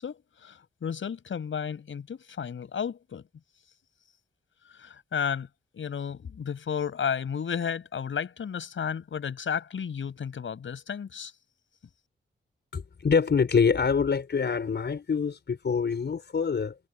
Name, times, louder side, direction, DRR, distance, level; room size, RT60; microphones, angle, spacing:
voice 1, 0.0-3.2 4.8-5.5 5.7-11.3, left 7 dB, 75° left, 6.6 m, -33 dB
voice 2, 12.7-16.8, left 6 dB, 60° left, 5.4 m, -25 dB
cardioid pair, 70°, 20 cm